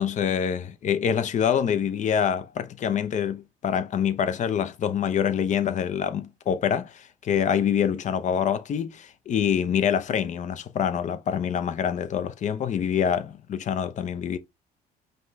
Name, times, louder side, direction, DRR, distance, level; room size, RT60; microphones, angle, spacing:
voice 1, 0.0-14.4, left 8 dB, 45° left, 0.6 m, -26 dB
5.2 x 2.3 x 3.9 m
cardioid pair, 110°, 17 cm